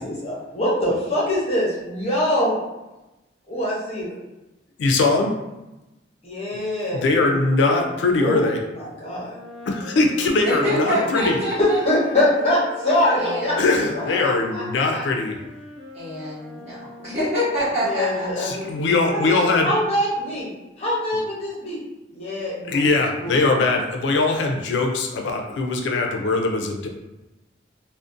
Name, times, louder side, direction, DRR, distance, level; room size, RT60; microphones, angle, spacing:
voice 1, 0.0-2.6 3.5-4.1 6.2-7.4 8.1-8.5 8.7-9.4 11.6-13.6 14.2-14.6 14.9-15.0 17.8-18.7 19.1-20.5 20.8-21.8 22.1-22.9 23.2-23.4, left 1 dB, 35° left, -6 dB, 0.6 m, -24 dB
voice 2, 4.8-5.3 6.9-8.6 9.7-11.4 13.6-15.4 18.4-19.7 22.6-26.9, left 3 dB, 75° left, 2 dB, 0.3 m, -21 dB
Wind instrument woodwind instrument, 9.2-17.6, left 3 dB, 75° right, 0.6 m, -39 dB
voice 3, 10.4-11.8 13.1-13.6 14.0-14.2 15.9-18.5, equal, 35° right, -10 dB, 1.1 m, -26 dB
2.4 x 2.0 x 2.5 m, 1.0 s
head